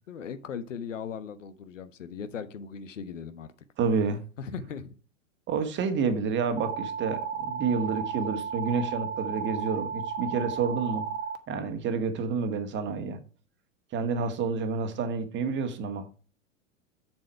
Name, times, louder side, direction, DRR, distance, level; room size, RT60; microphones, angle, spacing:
voice 1, 0.1-3.5 4.4-4.9, left 6 dB, 70° left, 1.2 m, -38 dB
voice 2, 3.8-4.2 5.5-11.1 11.5-13.2 13.9-16.1, right 5 dB, 30° right, 1.6 m, -29 dB
sound 1, 6.6-11.4, right 6 dB, 55° right, 1.4 m, -33 dB
7.6 x 7.3 x 4.6 m
figure-of-eight pair, 95°, 39 cm